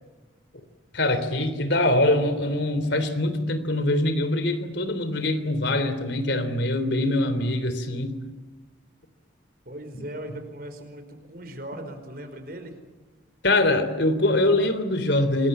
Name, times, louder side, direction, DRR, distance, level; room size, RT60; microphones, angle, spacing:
voice 1, 0.9-8.1 9.9-10.0 13.4-15.5, left 1 dB, 70° left, 11 dB, 3.4 m, -23 dB
voice 2, 9.6-12.7, right 1 dB, 50° right, 7 dB, 4.9 m, -38 dB
27.5 x 22.0 x 9.0 m, 1.2 s
head